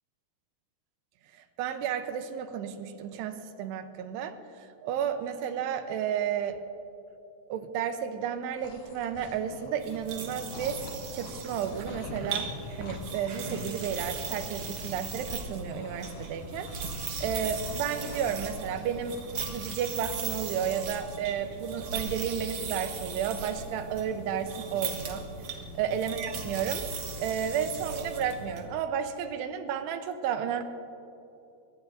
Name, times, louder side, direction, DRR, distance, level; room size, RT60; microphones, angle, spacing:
voice 1, 1.3-6.6 7.5-10.8 11.1-12.5 12.8-16.7 17.2-19.2 19.4-25.3 25.8-26.8 27.2-30.6, right 8 dB, 85° right, 8 dB, 3.0 m, -32 dB
sound 1, 8.3-10.2 10.5-19.8 20.0-22.1 22.5-22.7, left 3 dB, 65° left, 3.0 m, -47 dB
sound 2, 9.8-28.6, right 4 dB, 65° right, 1.4 m, -38 dB
22.5 x 19.5 x 2.7 m, 2.8 s
omnidirectional pair, 4.8 m